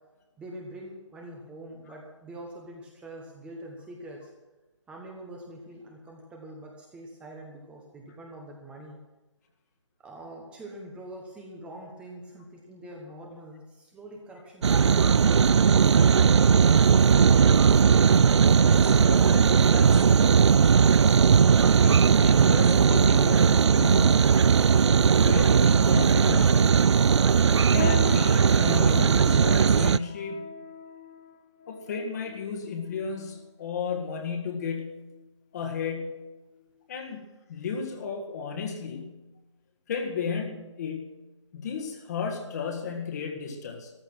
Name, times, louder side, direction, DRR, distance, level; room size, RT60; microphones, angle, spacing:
voice 1, 0.4-4.3 4.9-9.0 10.0-16.0, right 1 dB, 5° right, 0 dB, 1.2 m, -44 dB
sound 1, 14.6-30.0, right 6 dB, 65° right, 0.4 m, -19 dB
voice 2, 18.6-20.5 21.8-24.5 25.2-26.7 27.5-30.5 31.7-35.1 35.5-36.2 36.9-39.3 39.9-41.2 41.5-43.9, left 5 dB, 35° left, 3 dB, 1.8 m, -34 dB
sound 2, 20.4-28.7, right 6 dB, 25° right, 1.7 m, -45 dB
sound 3, 27.8-33.4 34.1-34.3 35.0-35.3 35.7-35.8 36.6-36.7, left 6 dB, 15° left, 0.4 m, -39 dB
14.0 x 12.0 x 6.2 m, 1.1 s
figure-of-eight pair, 150°, 16 cm